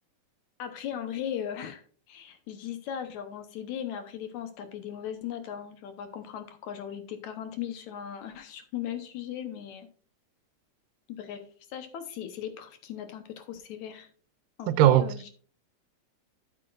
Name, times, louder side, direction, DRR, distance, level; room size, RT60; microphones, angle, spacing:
voice 1, 0.6-9.9 11.1-11.4 11.7-14.1 14.6-15.3, left 9 dB, 70° left, 2.1 m, -38 dB
voice 2, 14.7-15.3, right 12 dB, 85° right, 2.2 m, -21 dB
12.5 x 7.7 x 2.4 m
omnidirectional pair, 3.9 m